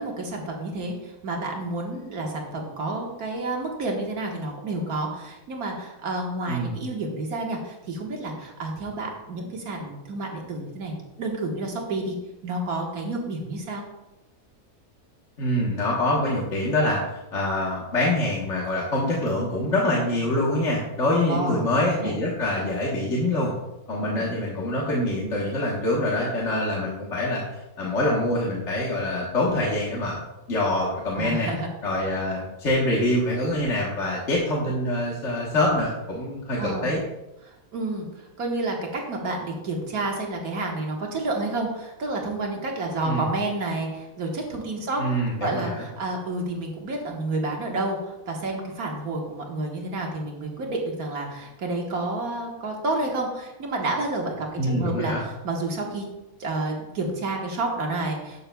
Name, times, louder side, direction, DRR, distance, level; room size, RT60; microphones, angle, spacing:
voice 1, 0.0-12.2 12.4-13.8 21.1-22.2 24.1-24.3 31.2-31.7 36.6-36.9 37.4-56.0 56.4-58.4, right 2 dB, 70° right, 0 dB, 1.9 m, -30 dB
voice 2, 15.4-23.5 23.9-30.2 30.5-31.5 31.8-37.0 43.1-43.2 45.0-45.9 54.6-55.2, left 1 dB, 50° left, -4 dB, 1.5 m, -25 dB
12.5 x 6.7 x 2.3 m, 0.97 s
omnidirectional pair, 1.6 m